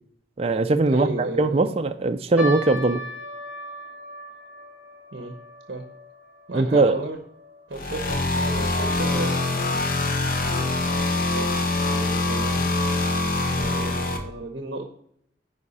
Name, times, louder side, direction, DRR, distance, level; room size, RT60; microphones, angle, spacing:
voice 1, 0.4-1.1 1.4-3.0 6.5-7.0, right 3 dB, 30° right, 0.4 m, -20 dB
voice 2, 0.9-1.7 5.1-5.4 5.7-5.9 6.5-7.2 7.7-9.4 11.2-12.7 13.5-14.9, right 2 dB, 55° right, 0.9 m, -34 dB
sound 1, 2.4-8.9 9.1-9.2 10.0-10.3 10.9-11.0 11.3-11.5, left 1 dB, 5° right, 2.0 m, -38 dB
sound 2, 7.7-14.2, left 2 dB, 50° left, 1.0 m, -24 dB
10.0 x 4.9 x 4.2 m
head